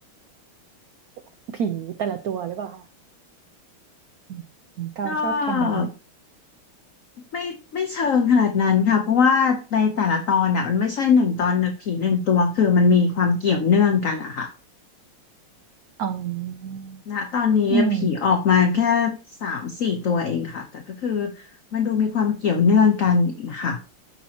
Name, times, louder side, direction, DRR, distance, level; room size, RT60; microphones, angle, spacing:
voice 1, 1.5-2.8 4.3-4.4 4.8-5.9 16.0-17.0 17.7-18.1, right 6 dB, 90° right, 8 dB, 0.8 m, -27 dB
voice 2, 5.0-5.9 7.3-14.5 17.1-21.3 21.7-23.8, left 6 dB, 55° left, 6 dB, 0.9 m, -21 dB
13.5 x 6.0 x 2.9 m, 0.32 s
omnidirectional pair, 2.3 m